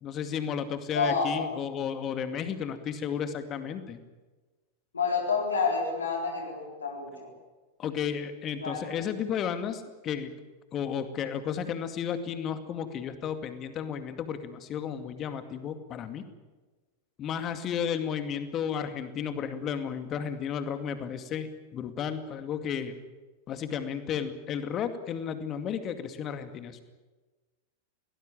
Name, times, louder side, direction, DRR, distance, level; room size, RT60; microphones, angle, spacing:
voice 1, 0.0-4.0 7.8-10.3 10.7-16.2 17.2-22.9 23.5-26.8, left 8 dB, 30° left, 9 dB, 2.3 m, -33 dB
voice 2, 0.9-1.5 4.9-7.3 8.6-8.9, left 5 dB, 75° left, 1 dB, 4.1 m, -29 dB
22.5 x 19.0 x 8.9 m, 1.3 s
figure-of-eight pair, 90°, 0 cm